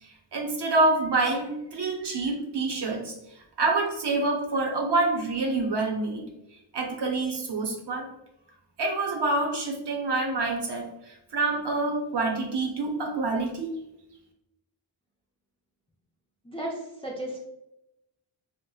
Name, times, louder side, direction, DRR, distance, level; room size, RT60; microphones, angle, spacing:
voice 1, 0.0-3.1 3.6-6.2 6.7-8.1 8.8-13.7, right 3 dB, 55° right, 0 dB, 0.7 m, -27 dB
voice 2, 16.4-17.4, right 1 dB, 10° left, -3 dB, 0.4 m, -34 dB
2.8 x 2.1 x 2.2 m, 0.89 s
wide cardioid pair, 60°, 50 cm